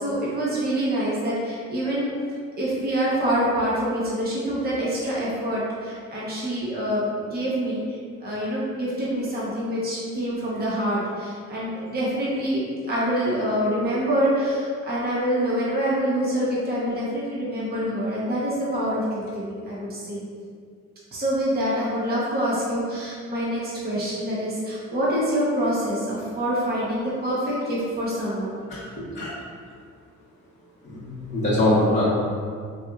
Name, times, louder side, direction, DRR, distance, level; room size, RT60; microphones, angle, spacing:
voice 1, 0.0-2.1 2.6-7.8 8.2-20.2 21.1-28.6 29.0-29.1, equal, 30° right, -7 dB, 1.0 m, -26 dB
voice 2, 30.8-32.0, left 1 dB, 25° left, -11 dB, 0.8 m, -22 dB
4.1 x 2.9 x 2.3 m, 2.1 s
cardioid pair, 90°, 30 cm